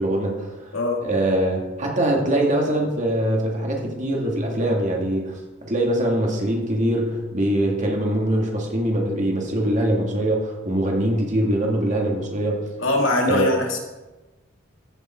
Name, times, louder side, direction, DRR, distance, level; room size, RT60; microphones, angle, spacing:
voice 1, 0.0-0.7 1.0-5.3 5.7-12.6 13.3-13.5, right 1 dB, 35° right, 0 dB, 2.2 m, -23 dB
voice 2, 12.8-13.8, left 2 dB, 70° left, 1 dB, 2.2 m, -21 dB
15.0 x 7.2 x 4.4 m, 1.1 s
head